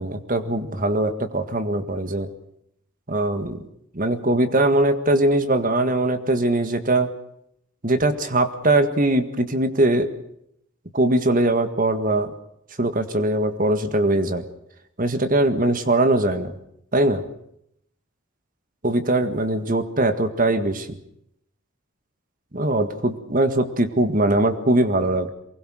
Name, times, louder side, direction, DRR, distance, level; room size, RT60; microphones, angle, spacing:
voice 1, 0.0-2.3 3.1-3.6 3.9-7.1 7.8-10.1 10.9-12.3 12.8-14.4 15.0-16.5 16.9-17.3 18.8-21.0 22.5-25.3, right 1 dB, 40° right, 10 dB, 1.8 m, -21 dB
23.5 x 20.5 x 6.5 m, 0.74 s
head